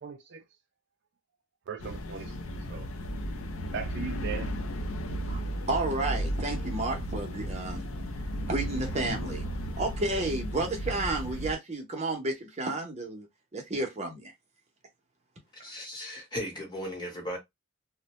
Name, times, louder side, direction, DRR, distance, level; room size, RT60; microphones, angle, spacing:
voice 1, 0.0-0.4 1.7-2.9 3.7-4.5, right 7 dB, 55° right, 0.3 m, -39 dB
sound 1, 1.8-11.5, equal, 70° left, 0.5 m, -34 dB
voice 2, 5.2-7.9 8.4-9.4 9.8-13.3 13.5-14.3, right 2 dB, 30° right, 0.7 m, -32 dB
voice 3, 15.6-17.4, equal, 20° left, 1.0 m, -36 dB
2.5 x 2.1 x 3.0 m
head